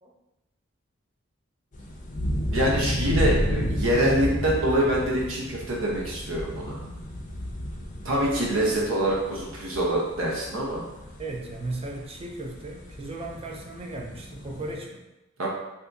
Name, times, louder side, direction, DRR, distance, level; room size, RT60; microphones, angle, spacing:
sound 1, 1.7-14.7, equal, 40° left, 0.5 m, -32 dB
voice 1, 2.5-6.8 8.0-10.8 15.4-15.5, right 1 dB, 75° right, -3 dB, 0.9 m, -25 dB
voice 2, 11.2-15.0, right 2 dB, 30° right, 0 dB, 0.5 m, -36 dB
2.7 x 2.6 x 3.4 m, 0.99 s
head